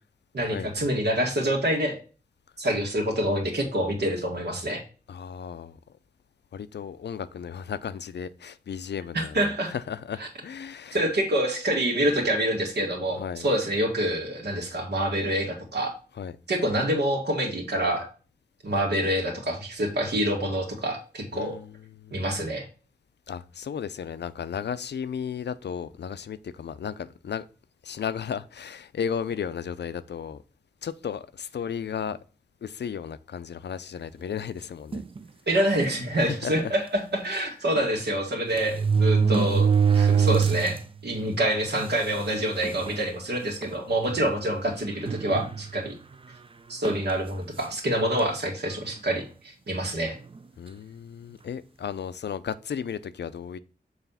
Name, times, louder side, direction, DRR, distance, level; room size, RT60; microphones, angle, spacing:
voice 1, 0.3-2.0 2.6-4.8 9.1-9.7 10.2-10.3 10.9-15.9 16.5-18.1 18.6-21.6 22.1-22.7 35.5-46.0 46.7-50.2, right 1 dB, 75° right, 2.0 m, -26 dB
voice 2, 5.1-5.8 6.5-11.0 13.2-13.4 16.2-16.3 21.3-21.7 22.0-22.2 23.3-27.5 27.8-30.4 30.8-32.2 32.6-35.0 36.1-36.7 44.1-44.3 50.6-53.6, left 7 dB, 85° left, 0.5 m, -34 dB
sound 1, 34.9-35.2 35.9-36.0 36.3-36.4 37.8-37.9 38.5-40.8 41.2-41.3 42.2-42.3 42.6-43.0 43.6-43.8 45.1-45.9 46.8-47.1, right 6 dB, 30° right, 0.4 m, -23 dB
7.1 x 3.3 x 5.6 m
wide cardioid pair, 95°, 17 cm